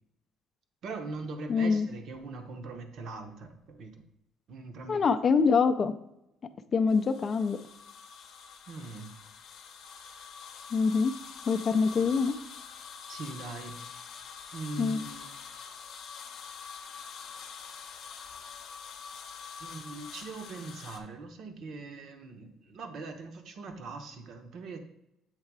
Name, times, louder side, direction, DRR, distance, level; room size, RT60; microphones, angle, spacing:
voice 1, 0.8-3.9 4.5-5.0 8.7-9.1 13.1-13.8 14.5-15.3 19.6-24.8, right 3 dB, 55° right, 6 dB, 0.9 m, -41 dB
voice 2, 1.5-1.9 4.9-5.9 6.7-7.6 10.7-11.1 11.5-12.4 14.8-15.0, left 5 dB, 30° left, 9 dB, 0.4 m, -25 dB
sound 1, 6.9-21.0, left 6 dB, 55° left, 0.7 m, -45 dB
7.4 x 3.2 x 4.7 m, 0.83 s
cardioid pair, 135°, 0 cm